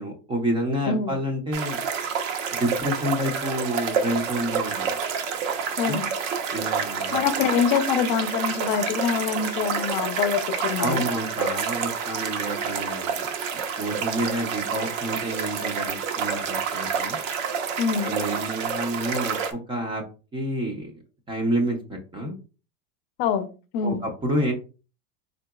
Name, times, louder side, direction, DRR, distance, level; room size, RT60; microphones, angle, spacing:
voice 1, 0.0-1.8 2.5-5.0 5.9-6.0 6.5-7.2 10.8-13.3 13.8-17.2 18.0-20.0 20.3-20.9 21.3-22.3 23.8-24.5, equal, 15° right, 0.5 m, -29 dB
voice 2, 0.9-1.2 5.8-6.1 7.1-11.1 17.8-18.1 23.2-23.5 23.7-24.0, left 7 dB, 45° left, 0.6 m, -25 dB
sound 1, 1.5-19.5, right 6 dB, 75° right, 0.9 m, -28 dB
3.8 x 3.7 x 2.3 m
supercardioid pair, 145°, 38 cm